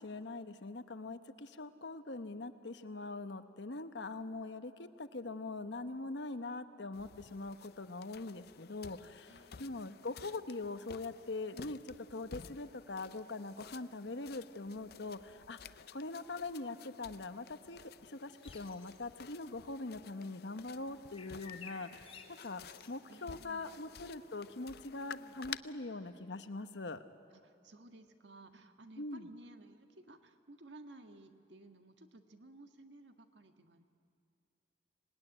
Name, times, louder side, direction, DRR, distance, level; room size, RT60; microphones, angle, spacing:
voice 1, 0.0-22.2 22.4-27.0 29.0-29.3, left 3 dB, 75° left, 10 dB, 1.1 m, -43 dB
sound 1, 6.9-25.6, left 7 dB, 55° left, 0.5 m, -53 dB
voice 2, 9.3-9.9 23.1-23.8 24.9-25.4 27.3-33.8, right 2 dB, 75° right, 6 dB, 1.6 m, -56 dB
sound 2, 18.4-19.0 21.1-22.9, left 6 dB, 30° left, 2.1 m, -53 dB
25.5 x 19.0 x 10.0 m, 2.6 s
head